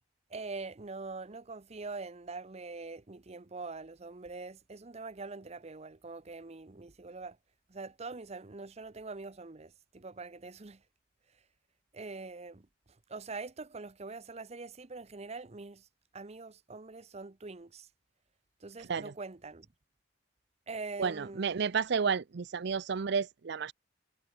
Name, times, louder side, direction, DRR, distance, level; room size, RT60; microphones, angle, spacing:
voice 1, 0.3-7.4 7.7-10.8 11.9-12.7 13.1-15.9 16.1-17.9 18.6-19.7 20.7-21.5, right 3 dB, 35° right, 0.8 m, -43 dB
voice 2, 18.8-19.1 21.0-23.7, right 6 dB, 60° right, 0.5 m, -31 dB
head